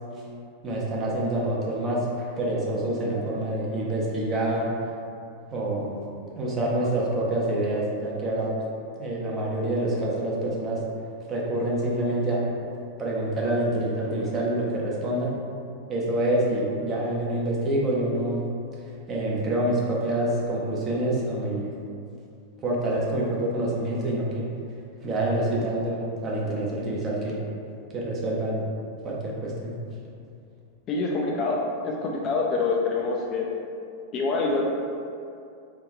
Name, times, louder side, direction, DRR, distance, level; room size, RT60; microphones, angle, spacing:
voice 1, 0.6-4.7 5.5-6.0 6.3-8.5 9.0-10.8 11.3-12.4 13.0-15.3 15.9-18.4 19.1-21.7 22.6-24.4 25.0-27.4 27.9-28.6 29.0-29.8, right 1 dB, 25° right, -4 dB, 0.7 m, -26 dB
voice 2, 30.9-31.6 31.8-33.5 34.1-34.6, left 3 dB, 35° left, -2 dB, 0.4 m, -25 dB
3.4 x 2.7 x 3.0 m, 2.5 s
figure-of-eight pair, 90°, 0 cm